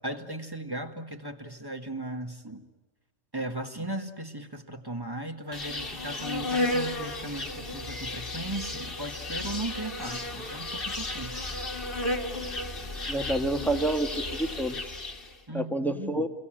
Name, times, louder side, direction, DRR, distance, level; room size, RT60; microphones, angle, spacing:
voice 1, 0.0-2.7 3.3-11.6 15.5-16.3, right 1 dB, 20° right, 6 dB, 1.8 m, -37 dB
Insect, 5.5-15.4, left 2 dB, 50° left, 2.3 m, -33 dB
voice 2, 13.1-14.9 15.5-16.3, right 1 dB, ahead, 6 dB, 1.7 m, -28 dB
29.0 x 22.5 x 9.1 m, 1.2 s
omnidirectional pair, 1.2 m